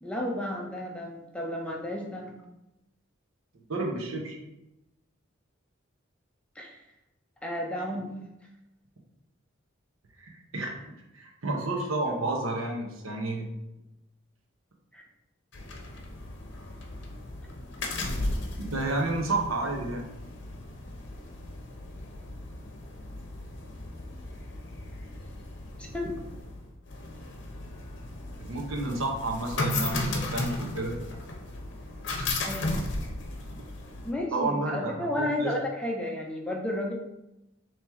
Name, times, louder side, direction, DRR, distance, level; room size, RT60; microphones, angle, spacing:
voice 1, 0.0-2.3 6.6-6.8 7.4-8.2 14.9-15.0 25.8-26.1 32.4-32.8 34.0-36.9, left 1 dB, 5° left, -1 dB, 0.5 m, -32 dB
voice 2, 3.7-4.4 10.2-10.7 11.1-13.5 18.0-18.1 18.7-20.1 28.4-31.0 32.2-32.3 34.3-35.5, right 2 dB, 85° right, 1 dB, 0.9 m, -30 dB
sound 1, 15.5-34.1, left 2 dB, 60° left, 0.7 m, -36 dB
4.4 x 3.0 x 3.5 m, 0.92 s
head